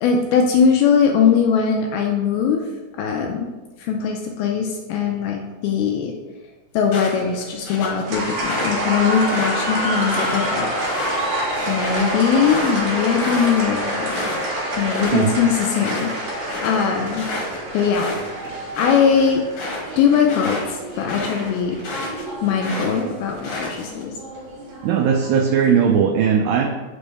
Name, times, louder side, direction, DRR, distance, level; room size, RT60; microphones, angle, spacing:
voice 1, 0.0-2.6 3.0-3.5 3.8-6.1 6.7-10.7 11.7-14.2 14.8-17.3 17.7-18.1 18.8-19.4 20.0-21.8 22.4-24.2, left 6 dB, 80° left, 2 dB, 2.2 m, -20 dB
sound 1, 6.9-8.7 9.1-14.5 14.8-15.3 15.6-22.2 22.6-24.0, left 2 dB, 65° left, 2.7 m, -31 dB
sound 2, 8.1-25.7, right 1 dB, 55° right, 2.4 m, -27 dB
voice 2, 24.8-26.7, right 7 dB, 85° right, 0 dB, 2.0 m, -18 dB
6.1 x 3.3 x 5.2 m, 1.2 s
omnidirectional pair, 4.7 m